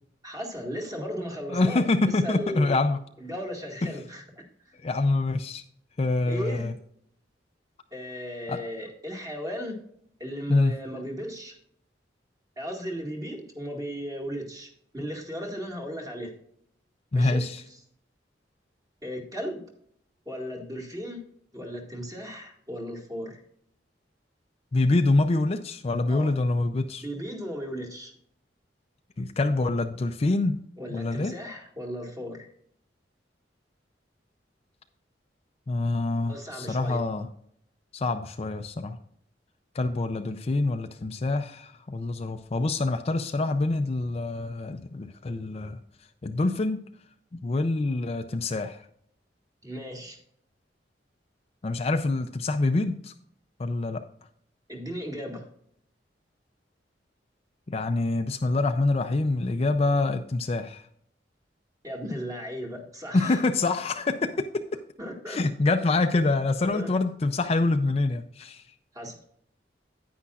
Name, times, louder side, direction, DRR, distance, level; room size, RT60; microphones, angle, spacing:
voice 1, 0.2-1.8 2.2-2.8 3.2-4.8 6.3-6.7 7.9-9.8 10.2-11.5 12.6-16.3 17.2-17.5 19.0-19.6 20.3-21.2 21.5-23.4 26.1-26.3 27.0-28.1 30.8-32.5 36.3-37.0 49.6-50.2 54.7-55.5 61.8-63.4 65.0-65.4 66.7-66.9 68.9-69.2, equal, 20° right, 1 dB, 1.9 m, -36 dB
voice 2, 1.5-3.0 4.8-5.6 6.0-6.7 8.5-8.6 10.5-10.7 17.1-17.6 24.7-27.0 29.2-30.6 30.9-31.3 35.7-37.3 37.9-39.0 39.7-45.8 46.2-46.8 47.3-48.8 51.6-53.1 53.6-54.0 57.7-60.8 63.1-64.3 65.3-68.6, left 2 dB, 35° left, 8 dB, 0.5 m, -26 dB
9.7 x 9.5 x 2.4 m, 0.68 s
head